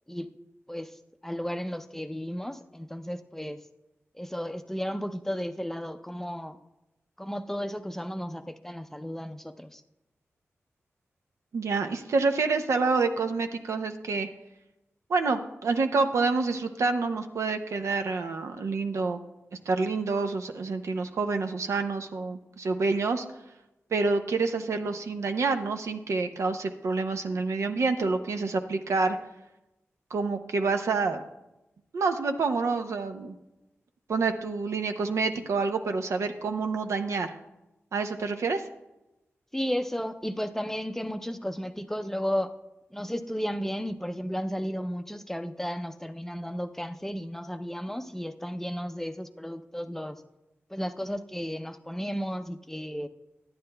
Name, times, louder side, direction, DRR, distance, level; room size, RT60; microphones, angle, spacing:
voice 1, 1.2-3.6 4.1-6.6 7.2-9.8 39.5-42.5 42.9-50.2 50.7-53.1, equal, 5° left, 9 dB, 0.5 m, -33 dB
voice 2, 11.5-14.3 15.1-19.2 19.7-23.2 23.9-29.2 30.1-31.2 31.9-33.4 34.1-37.4 37.9-38.6, right 4 dB, 85° right, 6 dB, 0.5 m, -27 dB
10.5 x 9.5 x 2.2 m, 0.95 s
cardioid pair, 60°, 5 cm